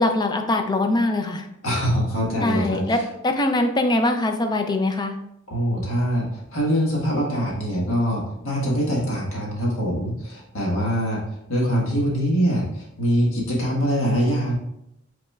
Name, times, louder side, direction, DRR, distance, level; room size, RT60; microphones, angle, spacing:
voice 1, 0.0-1.5 2.4-5.2, left 2 dB, 20° left, 6 dB, 0.4 m, -22 dB
voice 2, 1.6-3.0 5.5-11.2 11.5-14.5, equal, 85° left, -3 dB, 1.5 m, -23 dB
5.4 x 4.0 x 2.4 m, 0.79 s
head